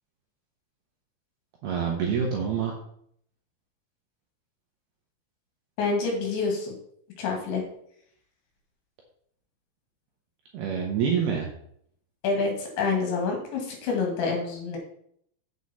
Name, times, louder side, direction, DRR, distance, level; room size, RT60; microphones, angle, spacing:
voice 1, 1.6-2.7 10.5-11.5, right 7 dB, 70° right, 0 dB, 2.6 m, -26 dB
voice 2, 5.8-6.7 7.2-7.6 12.2-14.8, left 4 dB, 65° left, 1 dB, 4.0 m, -27 dB
8.2 x 8.1 x 4.2 m, 0.67 s
omnidirectional pair, 5.9 m